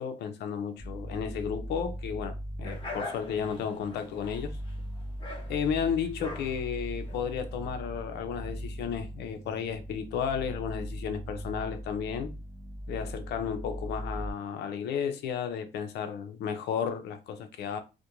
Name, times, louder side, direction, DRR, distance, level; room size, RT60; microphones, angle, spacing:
voice 1, 0.0-4.6 5.5-12.3 12.9-17.8, left 7 dB, 75° left, 0.6 m, -33 dB
sound 1, 0.8-14.3, equal, 10° right, 0.4 m, -40 dB
sound 2, 2.6-7.7, left 2 dB, 30° left, 1.0 m, -43 dB
2.4 x 2.2 x 2.9 m
cardioid pair, 125°, 17 cm